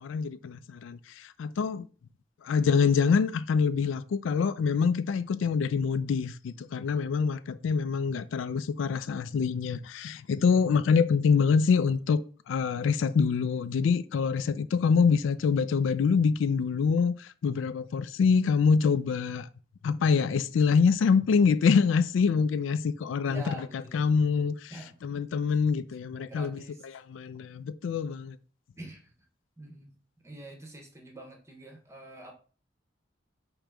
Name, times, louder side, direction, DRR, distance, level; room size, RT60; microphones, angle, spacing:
voice 1, 0.0-1.8 2.4-12.2 12.5-19.5 19.8-23.4 23.9-24.7 25.0-26.6 27.1-28.4, left 5 dB, 80° left, 0.3 m, -25 dB
voice 2, 23.2-24.1 24.7-25.0 26.2-26.8 28.8-29.1 29.6-29.9 30.2-32.3, right 1 dB, 15° right, 0.8 m, -45 dB
5.0 x 3.0 x 3.4 m
head